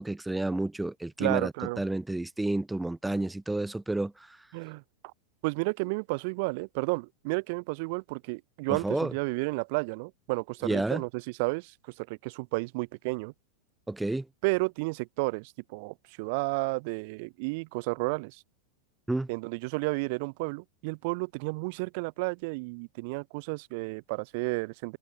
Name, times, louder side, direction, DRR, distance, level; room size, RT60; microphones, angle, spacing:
voice 1, 0.0-1.5 1.8-4.1 8.7-9.1 10.6-11.0 13.9-14.2 19.1-19.3, right 2 dB, 5° right, 1.1 m, -30 dB
voice 2, 1.2-1.8 4.5-4.8 5.4-13.3 14.4-18.4 19.3-25.0, right 29 dB, 45° right, 0.9 m, -32 dB
figure-of-eight pair, 90°, 0 cm